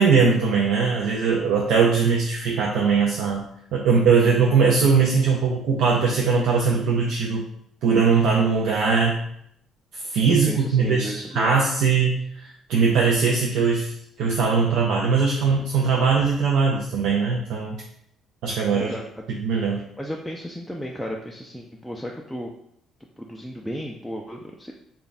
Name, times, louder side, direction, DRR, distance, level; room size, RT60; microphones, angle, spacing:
voice 1, 0.0-3.4 3.7-7.5 7.8-9.2 9.9-13.9 14.2-17.8 18.4-19.0 19.4-19.8, right 5 dB, 80° right, -1 dB, 0.5 m, -20 dB
voice 2, 10.3-11.5 18.7-19.0 20.0-22.5 23.2-24.7, equal, ahead, -1 dB, 0.3 m, -34 dB
3.4 x 2.2 x 3.9 m, 0.72 s
cardioid pair, 130°, 0 cm